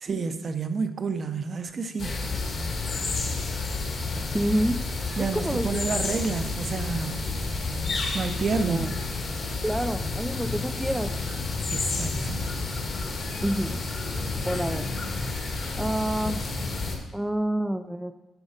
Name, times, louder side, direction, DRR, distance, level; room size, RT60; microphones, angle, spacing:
voice 1, 0.0-2.1 5.2-7.2 8.1-8.9 11.7-12.4, right 5 dB, 40° right, 9 dB, 0.7 m, -29 dB
sound 1, 2.0-17.0, left 3 dB, 45° left, 1.5 m, -30 dB
voice 2, 4.3-4.8 5.2-6.2 8.6-8.9 9.6-11.1 13.4-13.8 14.4-14.9 15.7-16.5 17.1-18.1, right 1 dB, 5° right, 8 dB, 0.4 m, -28 dB
8.2 x 4.8 x 5.1 m, 1.0 s
cardioid pair, 90°, 0 cm